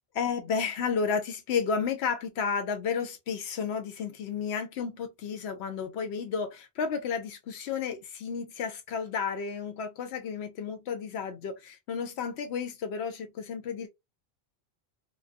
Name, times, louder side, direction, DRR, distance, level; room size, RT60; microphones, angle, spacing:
voice 1, 0.1-13.9, left 6 dB, 80° left, 0.9 m, -32 dB
2.3 x 2.3 x 2.4 m
omnidirectional pair, 1.1 m